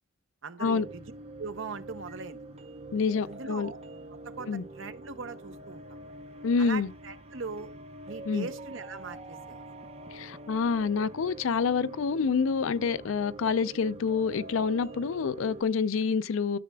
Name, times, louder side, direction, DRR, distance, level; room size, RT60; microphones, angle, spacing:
voice 1, 0.4-1.0 1.4-2.4 3.2-3.8 4.1-6.0 6.6-7.7 8.1-9.6, right 4 dB, 70° right, 0.7 m, -40 dB
sound 1, 0.6-15.6, right 1 dB, 30° right, 0.7 m, -45 dB
voice 2, 2.9-3.7 4.5-4.6 6.4-6.9 8.3-8.5 10.1-16.6, left 5 dB, 75° left, 0.4 m, -27 dB
13.0 x 6.7 x 2.2 m
head